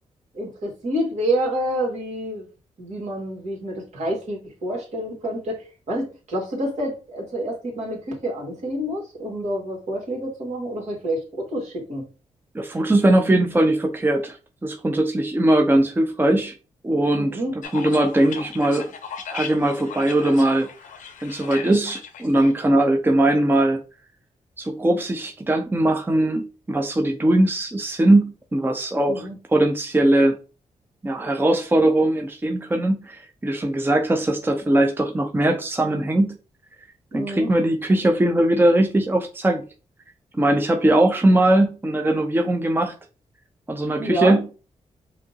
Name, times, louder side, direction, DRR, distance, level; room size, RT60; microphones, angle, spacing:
voice 1, 0.3-2.5 2.8-12.0 17.1-17.5 29.1-29.4 37.1-37.5 44.0-44.4, right 1 dB, 65° right, 2.1 m, -28 dB
voice 2, 12.5-14.4 14.6-16.5 16.8-17.4 17.7-18.9 19.3-20.7 21.2-23.8 24.6-30.4 31.0-36.4 37.1-39.6 40.3-42.9 43.7-44.4, right 1 dB, 15° right, 0.6 m, -20 dB
sound 1, 17.6-22.5, left 6 dB, 85° left, 0.7 m, -37 dB
5.0 x 2.8 x 2.8 m
cardioid pair, 70°, 13 cm